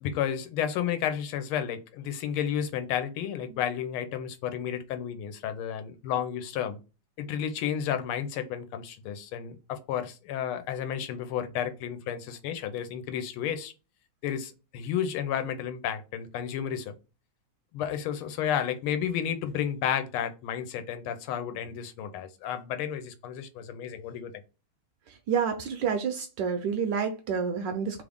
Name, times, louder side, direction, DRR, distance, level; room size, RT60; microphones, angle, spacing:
voice 1, 0.0-6.8 7.2-13.7 14.2-16.9 17.7-24.3, left 9 dB, 85° left, 1.5 m, -32 dB
voice 2, 25.3-28.0, right 6 dB, 75° right, 1.0 m, -29 dB
3.5 x 2.5 x 3.4 m
omnidirectional pair, 2.3 m